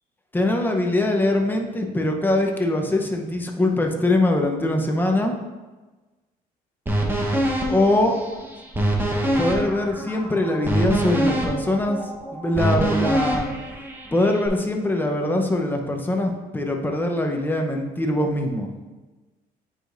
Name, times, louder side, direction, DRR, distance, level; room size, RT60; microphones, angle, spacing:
voice 1, 0.3-5.4 7.7-8.2 9.4-12.0 12.3-13.5 14.1-18.7, left 1 dB, 10° left, 3 dB, 0.8 m, -22 dB
sound 1, 6.9-14.5, right 1 dB, 10° right, 1.0 m, -25 dB
8.9 x 5.0 x 2.6 m, 1.2 s
cardioid pair, 110°, 17 cm